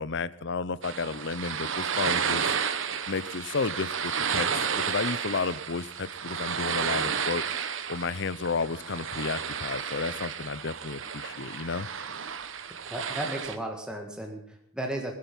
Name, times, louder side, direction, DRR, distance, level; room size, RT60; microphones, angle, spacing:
voice 1, 0.0-2.5 3.1-7.4 7.9-11.9, left 4 dB, 60° left, 17 dB, 0.7 m, -32 dB
sound 1, 0.8-13.6, right 7 dB, 65° right, 1.1 m, -32 dB
voice 2, 12.7-15.2, right 1 dB, 5° right, 2 dB, 1.8 m, -35 dB
21.0 x 10.5 x 5.5 m, 0.67 s
head